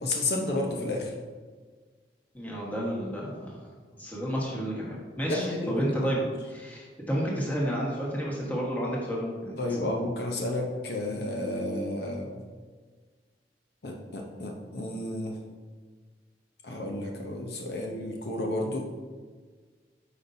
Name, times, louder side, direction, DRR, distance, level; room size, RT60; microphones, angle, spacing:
voice 1, 0.0-1.1 5.3-6.1 9.6-12.4 13.8-15.4 16.6-18.9, left 1 dB, 65° left, 1 dB, 0.8 m, -31 dB
voice 2, 2.3-3.6 4.0-9.9, equal, 10° left, -4 dB, 1.3 m, -31 dB
8.3 x 5.3 x 2.7 m, 1.5 s
head